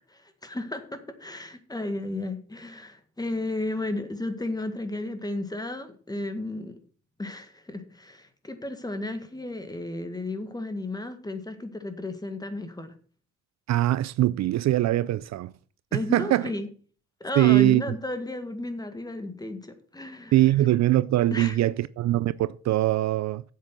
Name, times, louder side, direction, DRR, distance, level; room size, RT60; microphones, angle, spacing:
voice 1, 0.1-6.8 7.2-12.9 15.9-16.7 17.2-20.3 21.3-21.6, left 2 dB, 15° left, 1.8 m, -33 dB
voice 2, 13.7-15.5 15.9-16.5 17.4-17.8 20.3-23.4, right 15 dB, 65° right, 0.5 m, -22 dB
9.6 x 7.6 x 5.9 m
cardioid pair, 90°, 30 cm